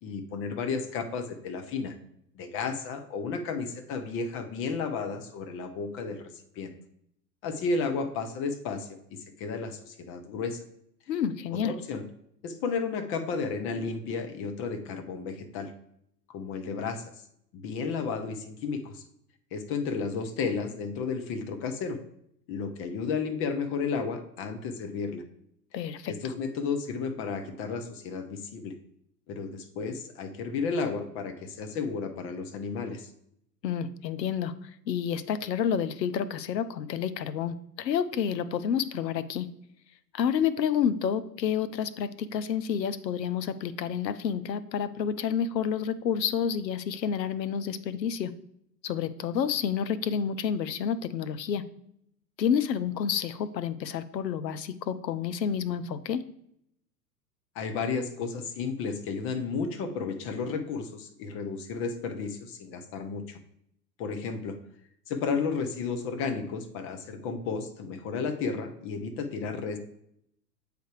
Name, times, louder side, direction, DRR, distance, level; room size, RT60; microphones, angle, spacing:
voice 1, 0.0-2.0 2.4-6.3 6.6-6.8 7.4-9.0 9.4-10.6 11.5-12.0 12.4-15.7 16.3-17.1 17.5-19.0 19.5-22.0 22.5-25.2 26.1-28.7 29.3-33.1 57.6-63.4 64.0-64.6 65.1-69.8, left 5 dB, 25° left, 7 dB, 0.6 m, -33 dB
voice 2, 11.1-11.7 25.7-26.3 33.6-34.5 34.9-39.5 40.1-48.3 48.8-51.6 52.4-56.2, left 8 dB, 80° left, 14 dB, 0.6 m, -29 dB
7.8 x 3.4 x 4.7 m, 0.73 s
figure-of-eight pair, 100°, 50 cm